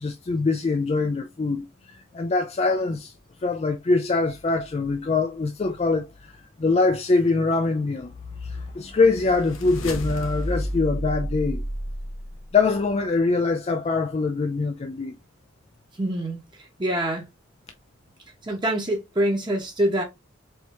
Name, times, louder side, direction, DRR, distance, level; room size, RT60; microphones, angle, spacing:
voice 1, 0.0-3.1 3.4-8.1 8.4-11.6 12.5-15.1, left 3 dB, 30° left, 0.4 m, -23 dB
sound 1, 8.4-12.6, equal, 85° left, 1.2 m, -31 dB
voice 2, 16.0-17.2 18.4-20.0, right 1 dB, 25° right, 1.0 m, -25 dB
4.4 x 2.8 x 3.1 m
head